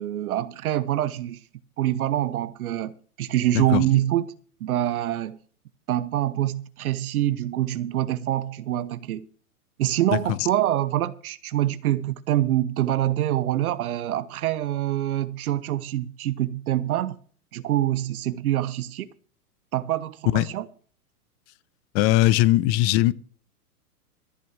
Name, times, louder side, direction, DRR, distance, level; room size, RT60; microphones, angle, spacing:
voice 1, 0.0-1.4 1.8-4.2 4.6-5.4 5.9-9.3 9.8-17.2 17.5-19.1 19.7-20.7, right 13 dB, 70° right, 1.0 m, -25 dB
voice 2, 21.9-23.1, left 16 dB, 30° left, 0.6 m, -20 dB
14.0 x 6.2 x 7.4 m
hypercardioid pair, 130°, 46 cm